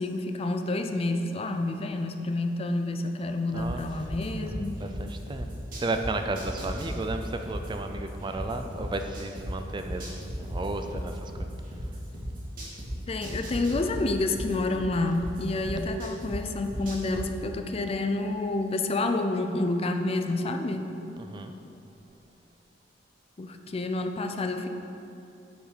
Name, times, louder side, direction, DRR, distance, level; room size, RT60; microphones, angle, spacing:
voice 1, 0.0-4.8 13.1-20.9 23.4-24.7, left 2 dB, 35° left, 6 dB, 0.4 m, -29 dB
voice 2, 3.5-3.8 4.4-5.5 5.8-11.5 21.3-21.5, right 2 dB, 25° right, 6 dB, 0.4 m, -33 dB
sound 1, 3.6-6.0 6.4-9.4 9.8-12.9 13.2-16.3 16.6-17.2, equal, 50° right, 2.0 m, -40 dB
9.0 x 5.1 x 4.9 m, 2.7 s
head